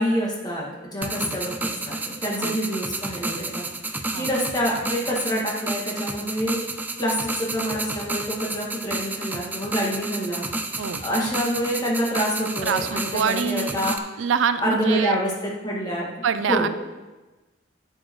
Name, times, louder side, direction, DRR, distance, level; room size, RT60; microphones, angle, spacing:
voice 1, 0.0-6.6 7.0-14.0 14.6-16.1 16.5-16.7, equal, 20° left, -4 dB, 1.9 m, -27 dB
sound 1, 1.0-14.0, right 2 dB, 10° right, 0.4 m, -31 dB
voice 2, 12.6-13.8 14.2-15.2 16.2-16.7, right 7 dB, 85° right, 12 dB, 0.4 m, -25 dB
11.0 x 7.8 x 3.1 m, 1.2 s
head